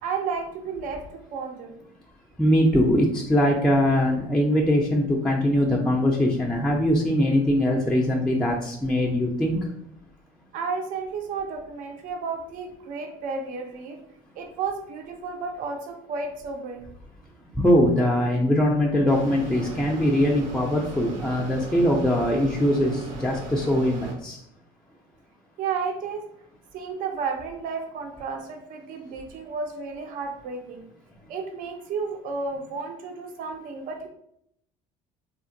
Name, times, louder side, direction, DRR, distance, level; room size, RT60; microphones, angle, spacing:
voice 1, 0.0-1.9 10.5-14.0 14.4-16.9 25.6-26.2 26.7-30.9 31.3-34.1, right 5 dB, 60° right, 4 dB, 0.5 m, -32 dB
voice 2, 2.4-9.6 17.6-24.4, equal, 5° left, -1 dB, 0.4 m, -22 dB
Mechanisms, 19.1-24.1, right 2 dB, 85° right, 0.8 m, -38 dB
3.4 x 2.1 x 2.5 m, 0.72 s
cardioid pair, 110°, 16 cm